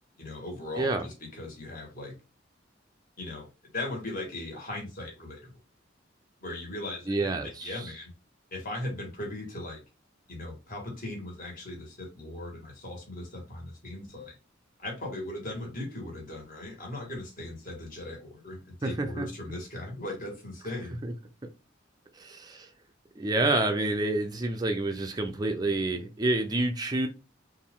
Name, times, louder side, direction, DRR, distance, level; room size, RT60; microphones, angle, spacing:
voice 1, 0.2-2.2 3.2-3.5 3.7-5.5 6.4-8.1 8.5-9.8 10.3-14.4 14.8-21.0, left 2 dB, 45° left, 1.8 m, -38 dB
voice 2, 7.1-7.8 18.8-19.3 21.0-21.1 22.2-22.7 23.2-27.1, right 2 dB, 20° right, 0.5 m, -28 dB
4.3 x 2.6 x 3.6 m
head